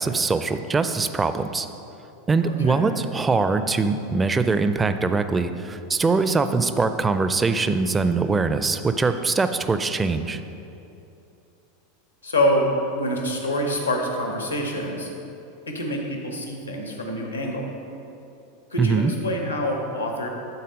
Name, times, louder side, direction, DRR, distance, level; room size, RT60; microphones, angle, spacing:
voice 1, 0.0-1.7 2.3-10.4 18.8-19.1, right 4 dB, 15° right, 10 dB, 0.4 m, -22 dB
voice 2, 2.4-2.9 12.2-15.1 15.7-17.7 18.7-20.3, equal, 85° left, 1 dB, 1.2 m, -26 dB
11.0 x 4.1 x 5.2 m, 2.8 s
figure-of-eight pair, 85°, 0 cm